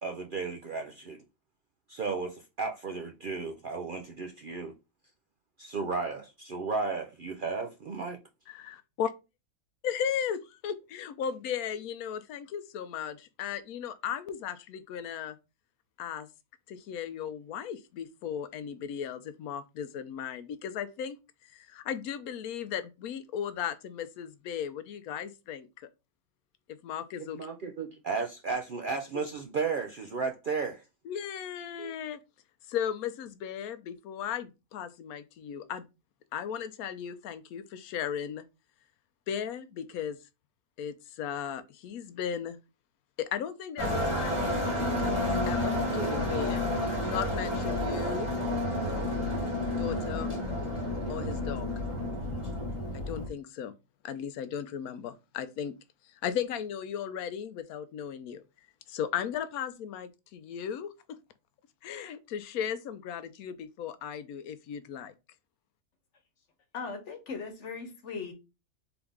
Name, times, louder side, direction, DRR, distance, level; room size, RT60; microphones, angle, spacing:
voice 1, 0.0-1.2 1.9-4.7 5.6-8.2 27.4-30.8 31.8-31.9, right 4 dB, 65° right, 0.5 m, -34 dB
voice 2, 8.5-9.1 9.8-15.4 16.0-16.3 16.7-25.9 26.8-27.4 29.1-29.2 31.1-32.2 32.7-35.9 36.3-38.4 39.3-40.2 40.8-42.6 43.2-46.6 47.1-48.3 49.8-50.3 51.1-51.7 52.9-53.7 54.0-55.7 56.2-58.4 58.9-61.2 61.8-65.1, left 8 dB, 80° left, 1.0 m, -36 dB
sound 1, 43.8-53.3, left 1 dB, 20° left, 1.3 m, -30 dB
voice 3, 66.7-68.3, left 5 dB, 55° left, 1.3 m, -38 dB
3.9 x 3.5 x 3.5 m
omnidirectional pair, 1.5 m